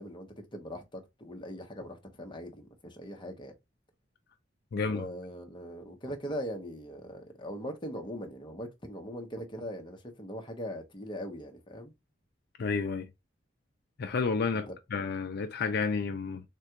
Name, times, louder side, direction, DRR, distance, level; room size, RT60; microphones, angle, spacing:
voice 1, 0.0-3.5 4.8-11.9 14.7-14.8, equal, 25° left, 0.9 m, -40 dB
voice 2, 4.7-5.1 12.6-13.1 14.0-16.4, left 4 dB, 55° left, 0.4 m, -31 dB
3.7 x 2.5 x 4.4 m
head